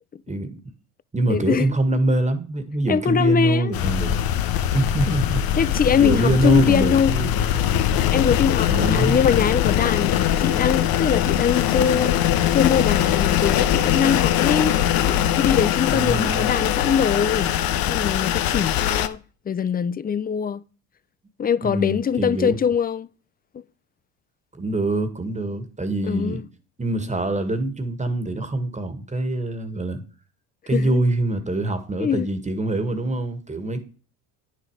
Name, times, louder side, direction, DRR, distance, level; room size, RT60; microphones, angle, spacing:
voice 1, 0.3-0.7 1.1-4.3 4.7-5.6 6.0-7.6 8.6-9.3 15.9-16.5 21.6-22.6 24.5-26.4 26.8-30.0 30.7-33.8, right 2 dB, 15° right, 1.9 m, -24 dB
voice 2, 1.3-1.6 2.9-3.7 5.1-5.2 5.6-7.2 7.5-7.6 8.1-14.8 15.1-17.5 17.9-19.2 19.5-20.6 21.4-23.1 26.0-26.4 30.7-31.0 32.0-32.3, left 7 dB, 20° left, 0.5 m, -22 dB
sound 1, 3.7-19.1, left 11 dB, 55° left, 1.0 m, -21 dB
9.5 x 6.6 x 4.9 m
supercardioid pair, 80°, 42 cm